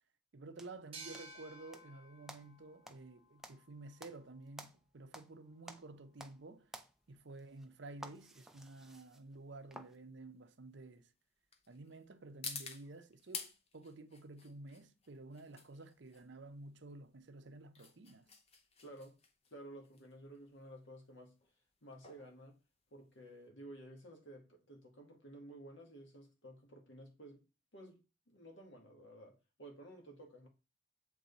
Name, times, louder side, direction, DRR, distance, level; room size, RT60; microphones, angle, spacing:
voice 1, 0.3-6.7 7.1-11.1 11.7-18.3, right 2 dB, 65° right, 0.7 m, -52 dB
sound 1, 0.6-1.9 2.3-5.4 5.6-6.4 6.7-10.0, right 1 dB, ahead, 0.5 m, -54 dB
sound 2, 0.9-4.3, right 3 dB, 30° right, 1.2 m, -55 dB
sound 3, 7.0-23.5, left 5 dB, 30° left, 0.7 m, -52 dB
voice 2, 18.8-19.2 19.5-21.4 21.8-22.6 22.9-27.4 27.7-30.5, right 1 dB, 70° left, 1.8 m, -54 dB
7.4 x 3.9 x 4.0 m
head